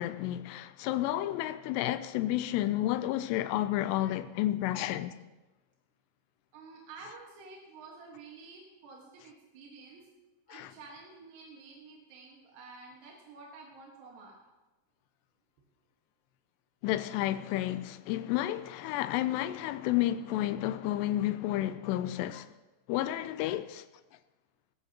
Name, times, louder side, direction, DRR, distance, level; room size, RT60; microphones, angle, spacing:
voice 1, 0.0-5.2 10.5-10.7 16.8-22.5 22.9-23.8, left 14 dB, 90° left, 2.7 m, -31 dB
voice 2, 6.5-10.1 10.5-14.4, right 4 dB, 85° right, 3.8 m, -50 dB
18.5 x 14.5 x 2.9 m
omnidirectional pair, 4.8 m